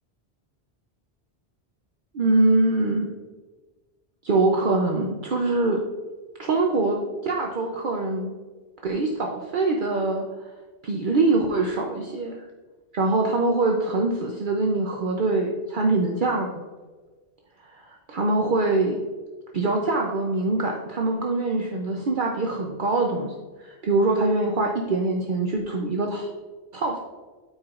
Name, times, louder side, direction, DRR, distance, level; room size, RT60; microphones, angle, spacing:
voice 1, 2.1-3.1 4.2-5.8 6.4-8.3 8.8-10.5 10.8-12.5 12.9-16.6 17.7-19.0 19.5-23.3 23.6-26.3 26.7-27.0, right 2 dB, 55° right, 1 dB, 0.8 m, -24 dB
12.5 x 4.8 x 2.5 m, 1.3 s
omnidirectional pair, 1.1 m